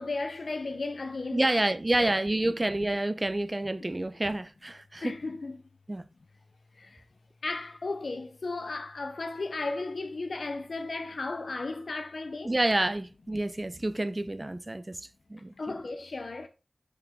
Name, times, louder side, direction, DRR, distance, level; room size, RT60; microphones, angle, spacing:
voice 1, 0.0-1.5 2.0-2.1 5.0-5.6 6.8-7.0 7.4-12.5 15.6-16.5, left 3 dB, 90° left, 0.5 m, -35 dB
voice 2, 1.3-5.2 5.9-6.1 12.4-15.0 15.3-15.7, right 1 dB, 30° right, 0.6 m, -28 dB
6.2 x 5.7 x 3.6 m
wide cardioid pair, 70°, 0 cm